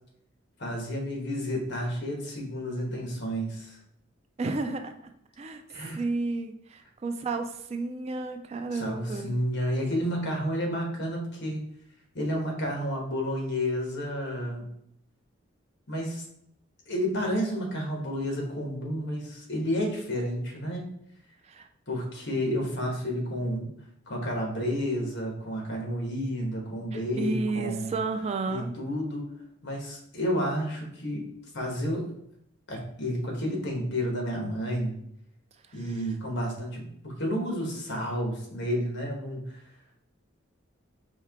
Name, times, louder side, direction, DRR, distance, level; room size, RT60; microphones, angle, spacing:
voice 1, 0.6-3.8 5.7-6.0 8.7-11.6 12.1-14.6 15.9-16.2 16.9-20.9 21.9-23.7 24.1-27.9 28.5-29.3 29.6-31.2 31.5-32.1 32.7-35.0 35.7-39.4, equal, 60° left, 1 dB, 1.2 m, -31 dB
voice 2, 4.4-4.9 5.4-5.6 6.0-9.3 21.5-21.7 26.9-28.7, right 3 dB, 30° right, 6 dB, 0.3 m, -31 dB
4.5 x 2.8 x 3.5 m, 0.71 s
head